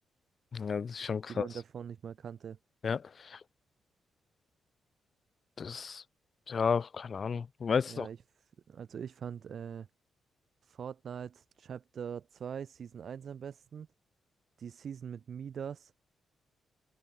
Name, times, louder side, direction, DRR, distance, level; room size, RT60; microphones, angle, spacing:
voice 1, 0.5-1.5 2.8-3.4 5.6-6.0 6.5-8.1, left 6 dB, 50° left, 1.9 m, -32 dB
voice 2, 1.2-2.6 7.9-9.9 10.6-13.9 14.6-15.9, right 7 dB, 60° right, 7.4 m, -42 dB
cardioid pair, 75°, 0 cm